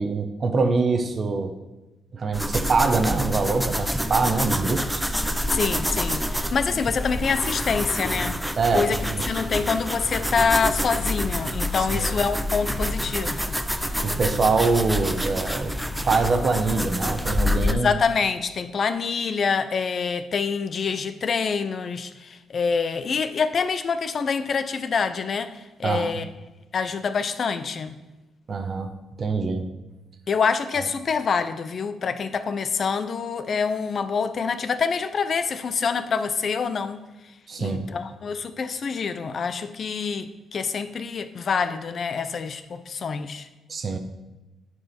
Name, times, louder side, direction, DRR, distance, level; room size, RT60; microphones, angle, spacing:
voice 1, 0.0-1.5 2.1-5.0 8.6-9.2 11.9-12.1 14.0-15.8 16.0-18.0 25.8-26.2 28.5-28.9 29.2-29.7 37.5-37.8 43.7-44.0, right 4 dB, 45° right, 7 dB, 0.8 m, -24 dB
sound 1, 2.3-17.7, equal, 5° right, 0.5 m, -27 dB
voice 2, 5.5-8.4 8.7-9.0 9.3-13.5 17.6-26.3 26.7-27.9 30.3-37.0 37.6-43.5, left 5 dB, 50° left, 11 dB, 0.6 m, -26 dB
9.6 x 4.7 x 4.3 m, 1.1 s
cardioid pair, 90°, 0 cm